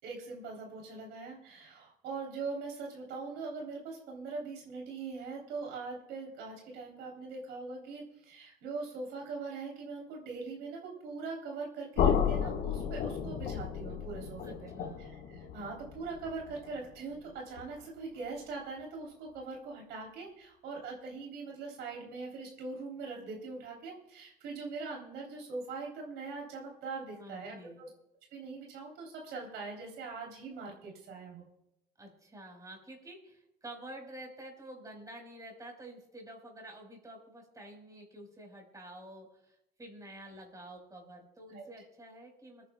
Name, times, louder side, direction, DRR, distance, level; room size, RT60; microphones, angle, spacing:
voice 1, 0.0-14.7 15.0-27.9 28.3-31.5 41.5-41.7, right 4 dB, 85° right, 0 dB, 3.4 m, -42 dB
sound 1, 12.0-17.9, left 8 dB, 80° left, 1.6 m, -33 dB
voice 2, 14.4-15.0 27.2-27.8 32.0-42.7, right 1 dB, 20° right, 1 dB, 4.5 m, -49 dB
27.5 x 10.0 x 2.3 m, 0.82 s
cardioid pair, 110°, 17 cm